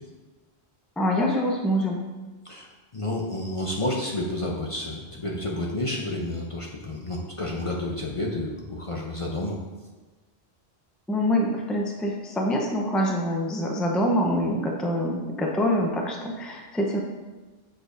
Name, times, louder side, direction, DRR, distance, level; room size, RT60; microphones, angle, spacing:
voice 1, 1.0-2.0 11.1-17.0, equal, ahead, 0 dB, 0.5 m, -25 dB
voice 2, 2.4-9.6, left 1 dB, 35° left, -2 dB, 0.7 m, -30 dB
7.6 x 6.3 x 2.6 m, 1.2 s
omnidirectional pair, 1.1 m